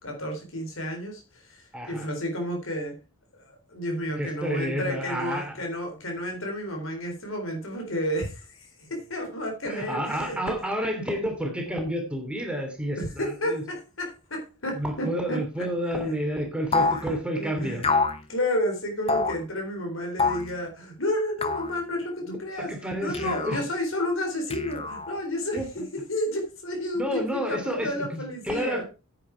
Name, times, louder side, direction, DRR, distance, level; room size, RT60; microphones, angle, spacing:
voice 1, 0.0-3.0 3.3-10.4 13.0-15.4 16.7-17.0 17.4-17.9 18.3-22.7 23.0-25.8 26.1-28.8, left 1 dB, 75° left, 2 dB, 3.7 m, -31 dB
voice 2, 1.7-2.1 4.2-5.6 9.6-13.6 14.7-17.9 22.2-23.6 25.5-25.7 26.9-28.8, equal, 5° right, 2 dB, 2.9 m, -30 dB
sound 1, 16.7-17.0 17.8-18.2 19.1-19.4 20.2-20.5 21.4-21.7 23.1-23.6 24.5-25.2, left 4 dB, 30° left, 1.0 m, -26 dB
10.0 x 9.0 x 4.6 m, 0.32 s
head